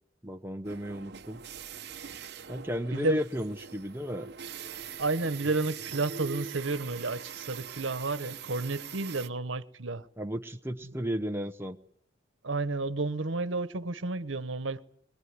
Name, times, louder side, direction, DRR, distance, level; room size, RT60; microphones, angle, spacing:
voice 1, 0.2-1.4 2.5-4.3 10.2-11.8, equal, 10° right, 1.0 m, -34 dB
sound 1, 0.6-9.3, right 7 dB, 55° right, 1.0 m, -43 dB
voice 2, 5.0-10.1 12.4-14.8, right 3 dB, 85° right, 1.2 m, -31 dB
22.0 x 21.5 x 9.7 m
head